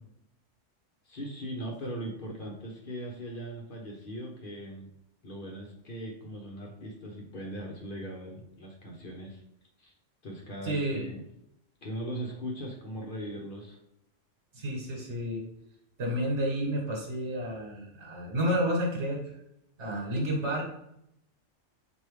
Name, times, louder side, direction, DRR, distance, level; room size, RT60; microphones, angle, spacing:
voice 1, 1.1-4.9 5.2-9.4 9.8-9.9 10.2-11.2 11.8-13.8, equal, 50° left, -1 dB, 0.8 m, -39 dB
voice 2, 10.6-11.1 14.5-15.4 16.0-19.2 19.8-20.7, equal, 60° right, -1 dB, 1.5 m, -30 dB
4.5 x 2.7 x 3.2 m, 0.78 s
omnidirectional pair, 1.3 m